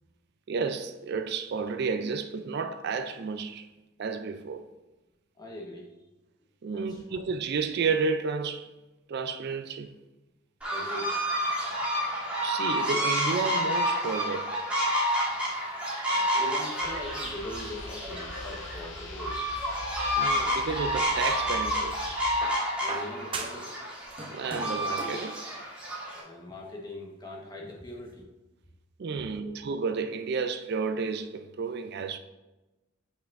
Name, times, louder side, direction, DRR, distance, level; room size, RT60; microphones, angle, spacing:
voice 1, 0.5-3.7 4.0-4.6 6.6-8.7 9.1-9.9 12.4-14.6 20.2-22.2 24.3-25.4 29.0-32.2, right 5 dB, 55° right, 0.4 m, -31 dB
voice 2, 5.4-5.9 6.7-7.0 10.7-11.1 16.1-19.5 22.8-23.7 26.2-28.3 29.4-29.5, left 1 dB, 20° left, 1.2 m, -41 dB
sound 1, 10.6-26.2, equal, 5° right, 1.4 m, -29 dB
sound 2, 16.8-22.4, left 2 dB, 80° left, 0.8 m, -43 dB
sound 3, 20.6-21.6 22.4-23.7 24.0-25.3 26.4-26.5, right 3 dB, 25° right, 0.8 m, -39 dB
8.4 x 5.2 x 2.5 m
head